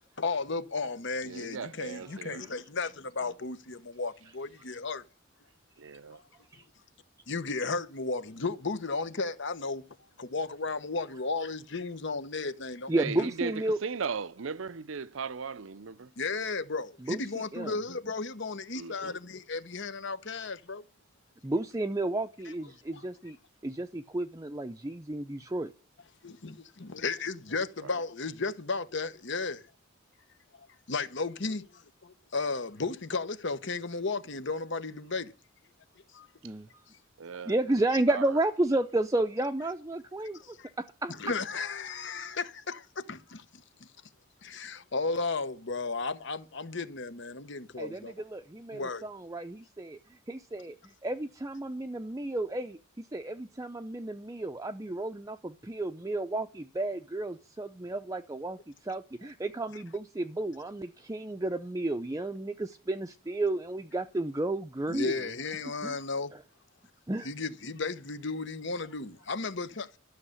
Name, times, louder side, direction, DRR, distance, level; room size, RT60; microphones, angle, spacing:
voice 1, 0.2-5.0 6.1-6.2 7.3-9.8 10.2-12.9 16.2-20.8 22.9-23.0 26.2-29.6 30.5-35.3 36.1-36.3 40.4-40.7 41.2-43.4 44.4-48.1 48.7-49.1 64.9-66.3 67.2-70.0, left 3 dB, 65° left, 1.1 m, -34 dB
voice 2, 1.2-2.4 5.8-6.2 12.9-16.1 18.8-19.1 27.8-28.0 37.2-37.8 38.1-38.4, right 5 dB, 80° right, 0.7 m, -37 dB
voice 3, 12.9-13.8 17.1-17.2 17.5-17.7 21.4-23.4 23.6-25.7 36.4-36.7 37.5-41.1 47.8-65.3 65.8-66.0 66.3-66.4 67.1-67.3, right 2 dB, 15° right, 0.6 m, -32 dB
12.5 x 6.5 x 9.9 m
head